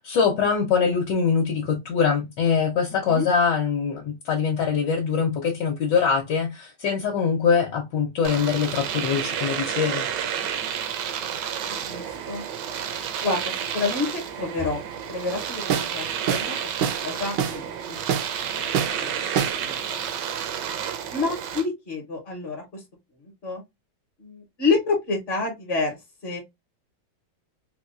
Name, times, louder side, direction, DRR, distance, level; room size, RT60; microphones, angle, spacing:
voice 1, 0.0-10.0, left 6 dB, 70° left, 1.2 m, -23 dB
voice 2, 2.9-3.3 11.7-12.4 13.2-14.8 15.1-18.0 18.5-18.7 19.0-19.1 19.6-20.0 21.1-22.8 23.2-23.6 24.2-26.0 26.2-26.4, left 3 dB, 45° left, 0.8 m, -29 dB
Domestic sounds home sounds, 8.2-21.7, right 8 dB, 75° right, 1.1 m, -30 dB
sound 1, 15.7-16.0 16.3-16.5 16.8-17.0 17.4-17.6 18.1-18.3 18.7-19.0 19.4-19.6, right 8 dB, 90° right, 1.4 m, -25 dB
4.2 x 2.2 x 2.4 m
omnidirectional pair, 2.2 m